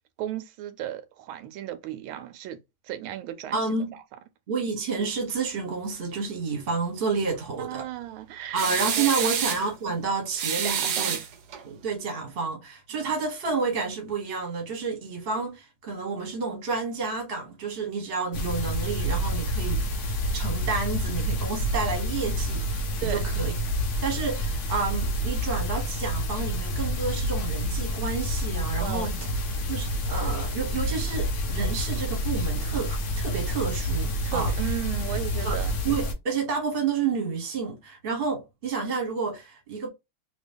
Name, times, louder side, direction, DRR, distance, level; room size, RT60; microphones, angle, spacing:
voice 1, 0.2-2.6 2.8-4.0 7.6-8.7 9.0-9.3 10.6-11.2 12.9-13.1 23.0-23.2 28.8-29.1 34.2-35.8, right 12 dB, 85° right, 1.4 m, -35 dB
voice 2, 3.5-3.9 4.5-7.9 8.5-11.2 11.6-23.5 24.0-29.2 29.7-34.5 35.4-39.9, right 4 dB, 35° right, 1.1 m, -30 dB
sound 1, 8.6-9.7 10.4-11.6, right 8 dB, 65° right, 1.0 m, -28 dB
sound 2, 18.3-36.1, equal, 75° left, 0.7 m, -28 dB
3.0 x 2.8 x 3.3 m
omnidirectional pair, 2.2 m